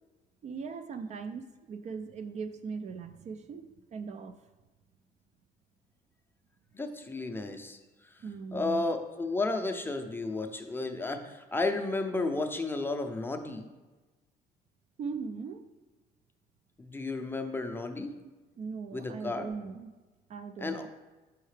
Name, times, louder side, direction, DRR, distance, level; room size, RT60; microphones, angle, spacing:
voice 1, 0.4-4.4 8.2-8.8 15.0-15.7 18.6-19.9 20.3-20.9, right 5 dB, 45° right, 10 dB, 0.4 m, -39 dB
voice 2, 6.7-8.2 8.5-13.7 16.8-18.1 18.9-19.5 20.6-20.9, left 2 dB, 15° left, 5 dB, 0.5 m, -33 dB
5.6 x 5.4 x 3.3 m, 1.2 s
cardioid pair, 110°, 17 cm